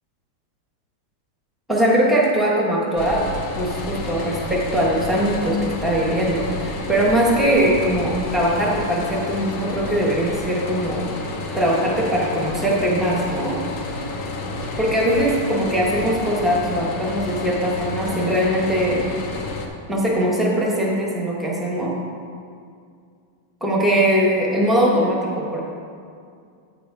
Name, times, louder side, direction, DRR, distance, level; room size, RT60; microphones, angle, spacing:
voice 1, 1.7-3.3 3.5-11.1 11.5-13.6 14.8-19.0 19.9-21.9 23.6-25.6, equal, ahead, -4 dB, 0.3 m, -21 dB
sound 1, 3.0-19.7, left 2 dB, 65° left, 1.3 m, -30 dB
8.8 x 6.2 x 4.7 m, 2.3 s
omnidirectional pair, 2.3 m